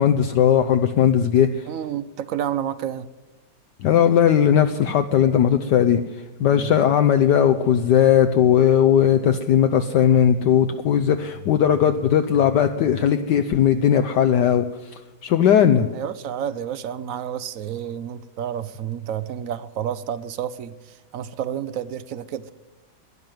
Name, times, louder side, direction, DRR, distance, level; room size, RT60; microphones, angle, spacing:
voice 1, 0.0-1.7 3.8-6.0 6.4-15.9, left 9 dB, 70° left, 7 dB, 1.2 m, -18 dB
voice 2, 1.7-3.1 6.5-6.7 15.9-22.5, right 9 dB, 70° right, 15 dB, 0.8 m, -30 dB
12.0 x 10.5 x 9.2 m, 1.1 s
omnidirectional pair, 2.1 m